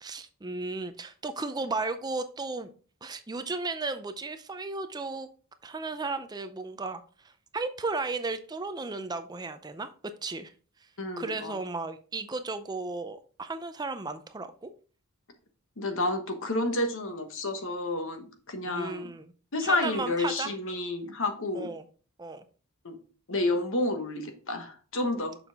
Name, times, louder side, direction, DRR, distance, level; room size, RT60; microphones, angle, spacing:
voice 1, 0.0-2.7 3.0-5.3 5.6-9.9 10.2-10.5 11.2-14.7 18.7-19.3 19.6-20.5 21.5-21.8 22.2-22.4, right 3 dB, 20° right, 10 dB, 0.4 m, -34 dB
voice 2, 11.0-11.6 15.8-19.1 19.5-21.7 22.8-23.0 23.3-25.4, left 2 dB, 60° left, 6 dB, 1.2 m, -30 dB
7.0 x 5.5 x 3.5 m, 0.39 s
head